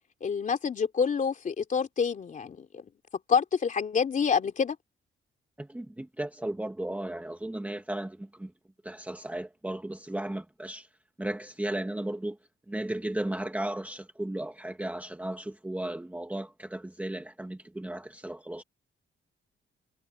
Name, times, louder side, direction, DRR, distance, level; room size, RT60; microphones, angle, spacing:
voice 1, 0.2-2.8 3.3-4.8, left 6 dB, 40° left, 3.3 m, -27 dB
voice 2, 5.6-8.5 8.8-10.9 11.2-12.4 12.7-18.6, right 1 dB, 5° right, 1.4 m, -35 dB
wide cardioid pair, 180°, 21 cm